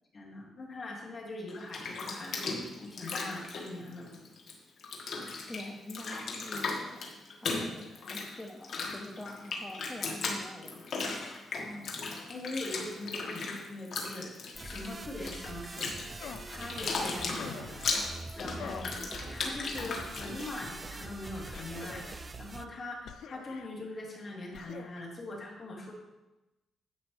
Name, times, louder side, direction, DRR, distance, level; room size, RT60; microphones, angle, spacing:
voice 1, 0.1-4.1 11.6-14.3 14.6-16.2 16.5-18.0 18.3-19.0 19.3-25.9, left 2 dB, 30° left, -2 dB, 2.2 m, -42 dB
Bathtub (filling or washing), 1.5-4.5 4.8-20.8, left 4 dB, 55° left, 1.5 m, -37 dB
voice 2, 5.5-11.2, left 1 dB, 10° left, 0 dB, 0.7 m, -45 dB
sound 1, 14.5-22.7, right 3 dB, 25° right, 0.3 m, -44 dB
sound 2, 16.2-16.6 17.4-17.9 18.6-19.0 19.7-20.3 21.5-22.2 23.0-23.7 24.5-25.0, left 8 dB, 70° left, 0.4 m, -46 dB
10.5 x 7.7 x 3.2 m, 1.0 s
cardioid pair, 145°, 0 cm